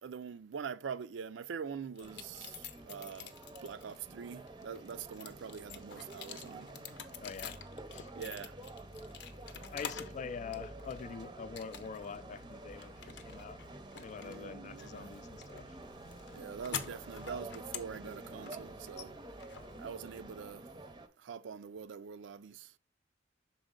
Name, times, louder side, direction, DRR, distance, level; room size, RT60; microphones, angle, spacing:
voice 1, 0.0-3.3 3.6-6.7 8.2-8.6 14.2-15.1 16.3-19.1 19.8-20.7 21.2-22.7, right 6 dB, 70° right, 0.4 m, -44 dB
sound 1, 2.0-4.0 4.5-10.2 10.5-11.1 11.6-12.2 12.4-20.4, left 7 dB, 65° left, 0.7 m, -47 dB
sound 2, 2.0-21.1, right 2 dB, 25° right, 0.6 m, -49 dB
voice 2, 7.2-7.6 7.9-8.1 9.6-13.6 14.0-15.8, left 6 dB, 40° left, 0.3 m, -45 dB
6.2 x 4.3 x 3.8 m
head